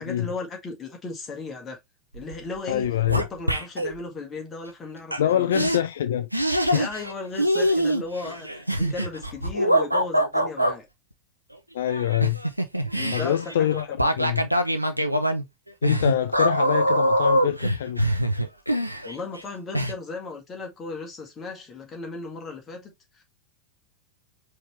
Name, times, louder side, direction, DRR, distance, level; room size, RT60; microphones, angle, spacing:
voice 1, 0.0-1.8 2.1-5.5 6.7-10.9 12.9-14.1 19.0-23.2, left 3 dB, 20° left, 1.8 m, -36 dB
sound 1, 2.1-2.4 2.7-3.9 5.1-5.2 5.5-5.8 6.3-7.1 7.4-10.7 11.9-19.4 19.7-19.9, equal, 90° right, 0.6 m, -24 dB
voice 2, 2.7-3.2 5.2-6.3 6.7-6.8 11.7-12.4 13.1-14.4 15.8-18.0, left 11 dB, 60° left, 0.3 m, -25 dB
5.0 x 3.2 x 3.2 m
figure-of-eight pair, 90°, 0 cm